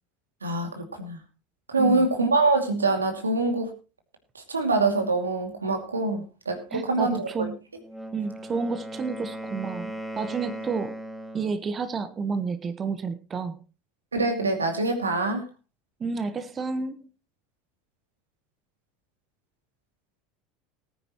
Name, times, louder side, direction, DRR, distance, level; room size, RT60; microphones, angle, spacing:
voice 1, 0.4-1.2 1.7-3.7 4.3-7.2 14.1-15.5, right 3 dB, 85° right, 4 dB, 2.5 m, -24 dB
voice 2, 6.7-7.6 8.1-11.0 11.3-13.6 16.0-17.0, right 5 dB, 30° right, 11 dB, 1.1 m, -30 dB
Wind instrument woodwind instrument, 7.8-11.6, right 1 dB, ahead, 2.5 m, -37 dB
19.5 x 9.5 x 3.1 m, 0.31 s
figure-of-eight pair, 75°, 0 cm